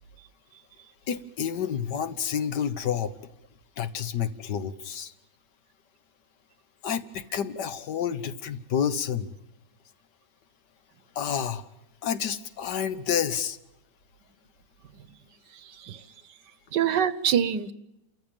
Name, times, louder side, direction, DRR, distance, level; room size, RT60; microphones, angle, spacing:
voice 1, 0.5-0.9 14.9-15.2 15.5-16.4 16.7-17.7, right 9 dB, 85° right, 16 dB, 1.6 m, -28 dB
voice 2, 1.1-3.1 3.8-5.1 6.8-9.3 11.1-11.6 12.0-13.6, left 8 dB, 80° left, 12 dB, 1.8 m, -29 dB
29.0 x 14.0 x 9.0 m, 0.91 s
omnidirectional pair, 1.8 m